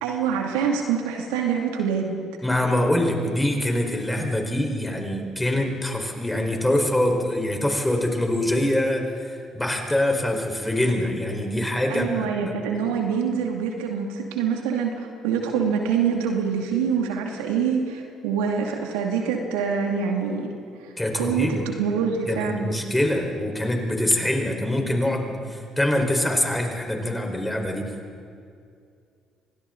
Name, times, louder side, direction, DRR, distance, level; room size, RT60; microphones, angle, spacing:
voice 1, 0.0-2.2 11.9-20.5 20.8-22.7, right 6 dB, 80° right, 2 dB, 2.4 m, -25 dB
voice 2, 2.4-12.5 21.0-21.6 22.3-27.9, left 1 dB, 10° left, 2 dB, 4.6 m, -24 dB
30.0 x 24.5 x 4.0 m, 2.3 s
hypercardioid pair, 50°, 0 cm